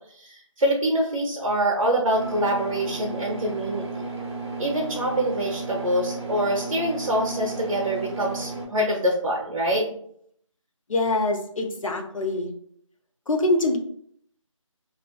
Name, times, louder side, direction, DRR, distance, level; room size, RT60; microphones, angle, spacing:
voice 1, 0.2-3.8 4.6-10.0, right 1 dB, 75° right, -1 dB, 0.7 m, -25 dB
sound 1, 2.1-8.7, right 3 dB, 55° right, 1.0 m, -33 dB
voice 2, 10.9-12.5 13.3-13.8, left 2 dB, 75° left, 3 dB, 0.6 m, -24 dB
2.4 x 2.4 x 2.2 m, 0.64 s
figure-of-eight pair, 175°, 17 cm